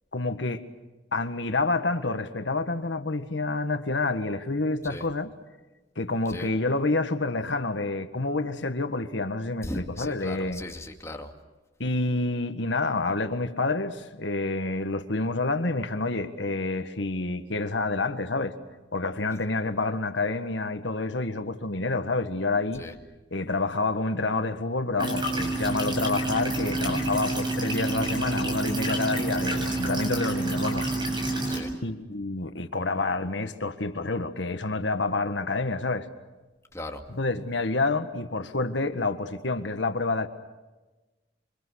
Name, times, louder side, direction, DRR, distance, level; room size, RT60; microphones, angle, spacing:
voice 1, 0.1-0.6 1.1-5.3 6.0-10.6 11.8-18.5 18.9-22.8 23.3-30.9 31.8-36.1 37.1-40.3, left 3 dB, 75° left, 1.7 m, -28 dB
voice 2, 9.6-11.3 22.8-22.9 31.5-31.7 36.7-37.0, left 1 dB, 15° left, 2.4 m, -37 dB
sound 1, 25.0-31.6, right 2 dB, 25° right, 7.4 m, -28 dB
28.5 x 25.5 x 6.5 m
head